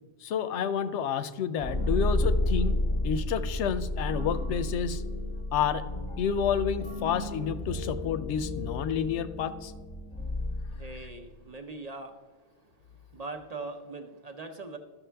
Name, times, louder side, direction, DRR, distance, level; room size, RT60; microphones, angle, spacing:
voice 1, 0.2-2.8 3.0-5.0 5.5-5.8 6.2-9.7, left 7 dB, 90° left, 12 dB, 0.9 m, -29 dB
sound 1, 1.6-11.3, left 1 dB, 30° left, 0.9 m, -31 dB
voice 2, 10.7-12.1 13.1-14.8, right 3 dB, 45° right, 5 dB, 0.6 m, -41 dB
13.0 x 6.0 x 3.4 m, 1.3 s
omnidirectional pair, 1.1 m